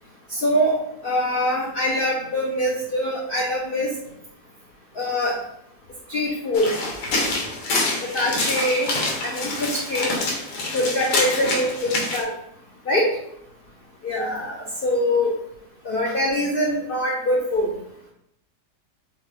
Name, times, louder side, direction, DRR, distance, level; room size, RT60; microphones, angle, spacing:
voice 1, 0.3-0.8 1.0-3.9 5.0-5.4 6.1-6.8 8.0-8.9 9.2-10.1 10.7-12.3 12.9-13.1 14.0-15.4 15.8-17.7, left 1 dB, 65° left, -2 dB, 0.5 m, -23 dB
sound 1, 6.5-12.2, left 2 dB, 85° left, 1.4 m, -26 dB
5.0 x 2.3 x 3.2 m, 0.76 s
omnidirectional pair, 1.7 m